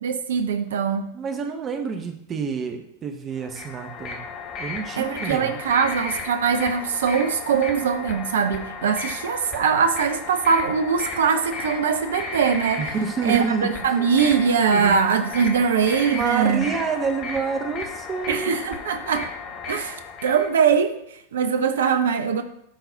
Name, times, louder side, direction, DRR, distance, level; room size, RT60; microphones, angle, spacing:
voice 1, 0.0-1.1 5.0-12.8 13.2-16.7 18.3-19.3 19.7-22.4, right 6 dB, 60° right, 8 dB, 0.5 m, -22 dB
voice 2, 1.1-4.2 4.6-5.6 12.8-13.7 14.7-15.1 16.1-18.8, right 5 dB, 25° right, 6 dB, 0.8 m, -28 dB
sound 1, 3.4-20.5, left 4 dB, 35° left, 1.0 m, -34 dB
11.5 x 3.9 x 2.7 m, 0.76 s
figure-of-eight pair, 90°, 0 cm